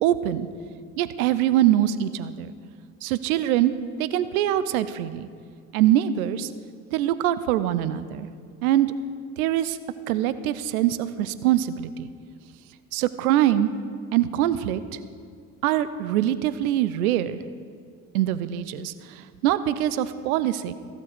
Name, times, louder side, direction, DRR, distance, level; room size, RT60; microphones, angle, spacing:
voice 1, 0.0-0.5 1.0-2.5 3.0-3.7 4.0-5.3 5.7-6.5 6.9-8.3 8.6-8.9 9.4-9.8 10.1-12.1 12.9-13.7 14.1-15.0 15.6-17.4 18.1-20.7, right 12 dB, 80° right, 14 dB, 0.6 m, -23 dB
15.0 x 7.5 x 5.0 m, 2.2 s
hypercardioid pair, 55°, 43 cm